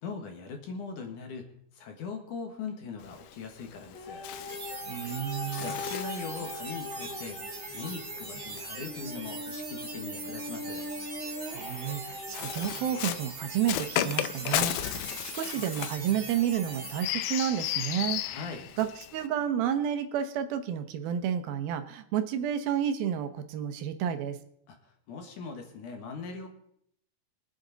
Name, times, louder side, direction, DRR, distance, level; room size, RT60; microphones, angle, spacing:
voice 1, 0.0-4.3 5.6-7.4 7.7-10.9 18.2-18.7 24.7-24.8 25.1-26.5, left 4 dB, 60° left, 4 dB, 2.7 m, -40 dB
Bird, 3.0-9.5 10.5-19.3, left 12 dB, 90° left, 1.8 m, -36 dB
sound 1, 3.9-13.0 13.7-13.8, left 2 dB, 35° left, 2.6 m, -41 dB
sound 2, 4.5-17.1, right 3 dB, 35° right, 2.0 m, -41 dB
voice 2, 4.9-5.8 11.5-18.2 18.8-24.4, right 9 dB, 75° right, 8 dB, 2.6 m, -31 dB
23.5 x 8.5 x 3.9 m, 0.69 s
omnidirectional pair, 4.4 m